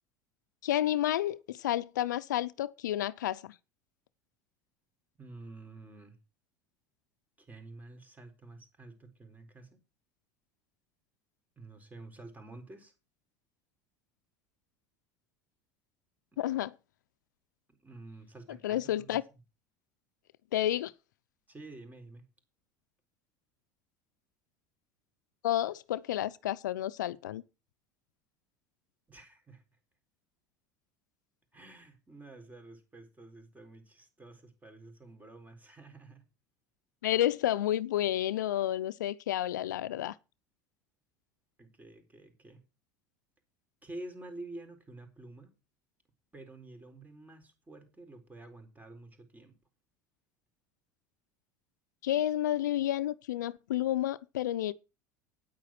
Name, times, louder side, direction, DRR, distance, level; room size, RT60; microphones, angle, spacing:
voice 1, 0.6-3.5 16.4-16.7 18.6-19.2 20.5-20.9 25.4-27.4 37.0-40.1 52.0-54.7, left 13 dB, 85° left, 0.6 m, -30 dB
voice 2, 5.2-6.2 7.4-9.8 11.6-12.9 16.3-16.4 17.7-19.2 21.5-22.2 29.1-29.6 31.5-36.3 41.6-42.6 43.8-45.5 46.3-49.6, right 2 dB, 15° right, 4.2 m, -49 dB
9.6 x 9.0 x 5.9 m
hypercardioid pair, 85°, 10 cm